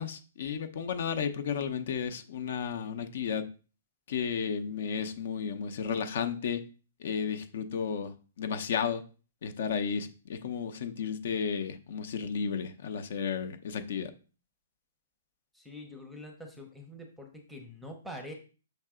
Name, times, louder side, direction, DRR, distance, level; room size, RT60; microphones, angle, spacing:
voice 1, 0.0-3.4 4.1-6.6 7.0-9.0 9.4-14.1, left 6 dB, 50° left, 8 dB, 0.8 m, -33 dB
voice 2, 15.5-18.3, left 1 dB, ahead, 3 dB, 0.8 m, -45 dB
6.7 x 3.5 x 4.9 m, 0.35 s
hypercardioid pair, 170°, 0 cm